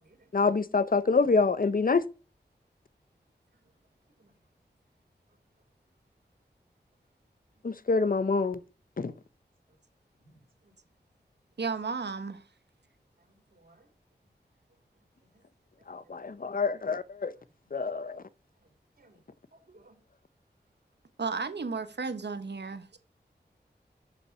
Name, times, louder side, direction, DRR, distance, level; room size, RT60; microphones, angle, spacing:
voice 1, 0.3-2.1 7.6-8.6 9.0-9.1 15.9-17.3 17.7-18.2, left 4 dB, 55° left, 0.8 m, -26 dB
voice 2, 10.2-10.7 13.5-13.9 15.9-16.1 17.3-17.4 19.0-19.2 19.5-20.0 22.6-23.0, right 2 dB, 60° right, 3.1 m, -61 dB
voice 3, 11.6-12.4 21.2-23.0, right 4 dB, 75° right, 1.2 m, -33 dB
7.1 x 6.8 x 5.6 m
cardioid pair, 45°, 18 cm